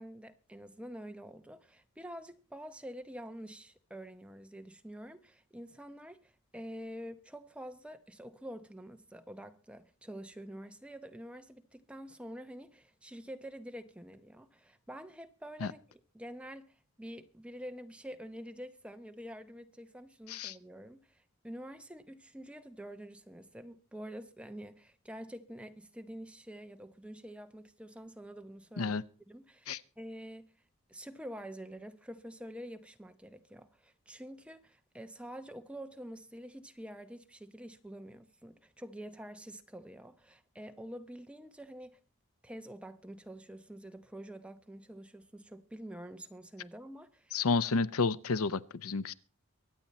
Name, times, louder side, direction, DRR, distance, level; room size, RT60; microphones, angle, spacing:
voice 1, 0.0-29.0 29.3-30.5 30.9-42.0 42.4-47.5, equal, 5° right, 0.8 m, -47 dB
voice 2, 47.3-49.1, left 4 dB, 85° left, 0.6 m, -30 dB
23.5 x 8.8 x 4.2 m
head